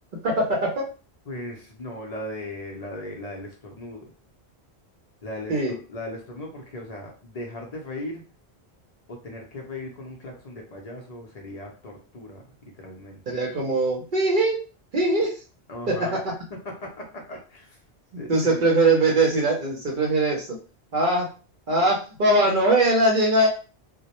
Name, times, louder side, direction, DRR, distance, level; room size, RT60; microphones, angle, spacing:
voice 1, 0.2-0.8 5.5-5.7 13.3-14.6 14.9-15.3 15.9-16.0 18.3-20.5 20.9-21.3 21.7-23.5, right 2 dB, 55° right, 0 dB, 0.7 m, -21 dB
voice 2, 1.3-4.1 5.2-8.2 9.1-13.4 15.7-16.2 16.5-17.8 18.2-18.7, left 1 dB, 45° left, -1 dB, 0.6 m, -38 dB
2.1 x 2.0 x 2.8 m, 0.35 s
omnidirectional pair, 1.1 m